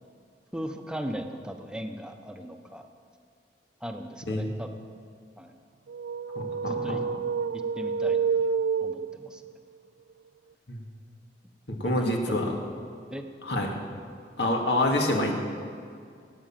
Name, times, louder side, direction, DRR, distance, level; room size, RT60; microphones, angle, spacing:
voice 1, 0.5-2.9 3.8-4.7 5.4-5.5 6.6-7.0 7.8-8.5 8.8-9.4 11.8-12.2 13.1-13.2, equal, 5° right, 5 dB, 1.0 m, -37 dB
sound 1, 5.9-9.5, right 6 dB, 75° right, 0.3 m, -28 dB
voice 2, 6.3-7.0 10.7-10.8 11.7-12.5 13.4-13.7 14.4-15.4, left 1 dB, 70° left, 1 dB, 2.3 m, -27 dB
18.0 x 9.4 x 7.6 m, 2.2 s
head